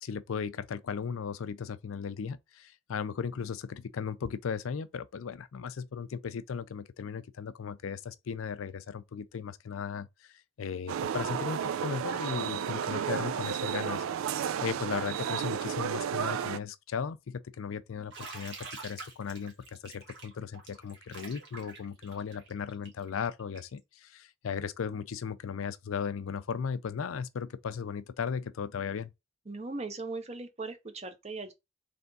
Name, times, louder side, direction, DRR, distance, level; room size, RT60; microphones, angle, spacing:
voice 1, 0.0-29.1, left 6 dB, 85° left, 0.4 m, -36 dB
sound 1, 10.9-16.6, right 8 dB, 90° right, 0.3 m, -32 dB
Bathtub (filling or washing), 18.1-23.8, right 3 dB, 60° right, 1.6 m, -46 dB
voice 2, 29.5-31.5, right 3 dB, 30° right, 0.7 m, -39 dB
3.5 x 3.4 x 3.9 m
head